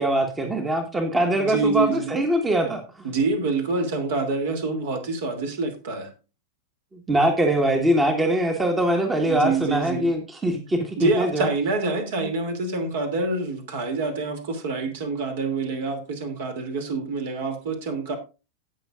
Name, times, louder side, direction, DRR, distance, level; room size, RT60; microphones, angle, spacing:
voice 1, 0.0-3.1 6.9-11.5, right 1 dB, 15° right, 1.5 m, -23 dB
voice 2, 1.3-2.2 3.0-6.1 9.2-10.1 11.0-18.2, right 3 dB, 55° right, 2.8 m, -26 dB
17.5 x 6.4 x 2.5 m
figure-of-eight pair, 90°, 0 cm